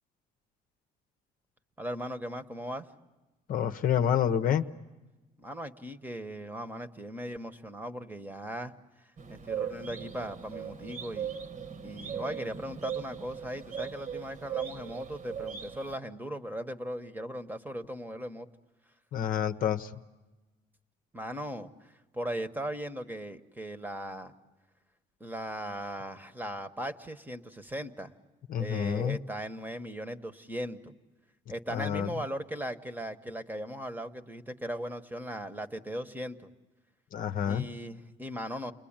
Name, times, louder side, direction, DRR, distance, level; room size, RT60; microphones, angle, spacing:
voice 1, 1.8-2.9 5.4-8.7 9.0-11.4 11.8-18.5 21.1-24.3 25.2-28.1 28.6-30.9 31.5-36.5 37.5-38.7, equal, 10° right, 9 dB, 1.1 m, -38 dB
voice 2, 3.5-4.7 19.1-19.9 28.5-29.2 31.7-32.1 37.1-37.6, left 9 dB, 55° left, 8 dB, 0.8 m, -28 dB
sound 1, 9.2-16.0, right 7 dB, 50° right, 1.3 m, -38 dB
29.5 x 21.0 x 8.8 m, 1.2 s
cardioid pair, 110°, 17 cm